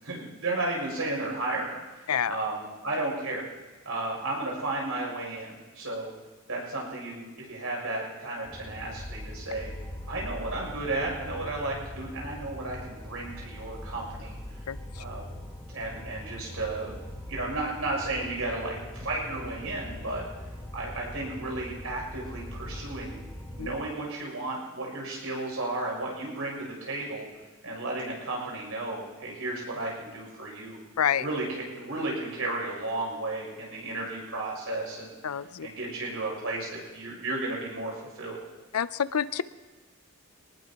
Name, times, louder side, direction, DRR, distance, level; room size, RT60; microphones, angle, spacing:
voice 1, 0.0-3.4 3.9-6.1 6.5-9.7 10.1-14.7 15.0-15.3 15.7-16.9 17.3-20.2 20.7-23.2 23.5-27.3 27.6-30.8 31.2-38.4, right 2 dB, 70° right, -2 dB, 7.0 m, -33 dB
sound 1, 8.4-23.8, left 1 dB, 10° left, 1.7 m, -41 dB
voice 2, 35.2-35.7 38.7-39.4, left 8 dB, 90° left, 16 dB, 0.5 m, -27 dB
24.0 x 19.5 x 3.0 m, 1.2 s
head